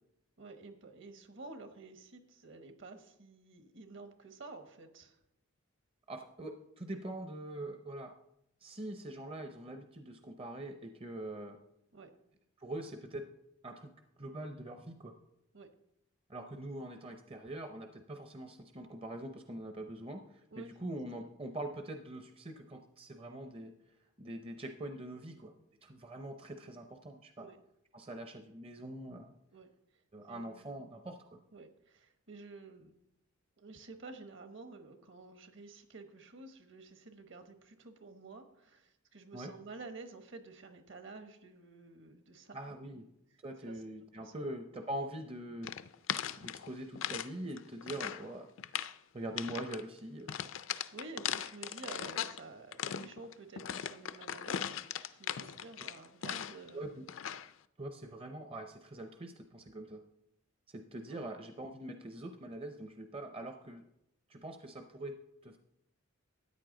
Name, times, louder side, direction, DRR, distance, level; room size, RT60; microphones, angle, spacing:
voice 1, 0.4-5.2 11.9-12.1 15.5-15.7 20.5-20.7 27.4-27.6 29.5-29.7 30.2-30.7 31.5-33.0 33.6-43.0 43.7-43.8 44.1-44.5 50.9-56.8 61.1-61.2, right 3 dB, 60° right, 8 dB, 1.2 m, -51 dB
voice 2, 6.1-8.1 8.6-11.6 12.6-13.3 13.6-13.9 14.2-15.1 16.3-23.7 24.2-25.5 25.8-27.5 27.9-29.3 30.1-31.4 39.3-39.5 42.5-43.0 43.4-45.7 46.4-48.5 49.1-50.4 56.7-57.1 57.8-60.0 60.7-63.8 64.3-65.2 65.4-65.6, right 1 dB, 25° right, 6 dB, 0.6 m, -43 dB
sound 1, 45.6-47.3 47.6-48.2 48.6-49.0 49.4-49.8 50.3-52.4 52.7-56.7 57.1-57.5, left 9 dB, 65° left, 0.4 m, -39 dB
13.5 x 9.2 x 3.9 m, 0.79 s
head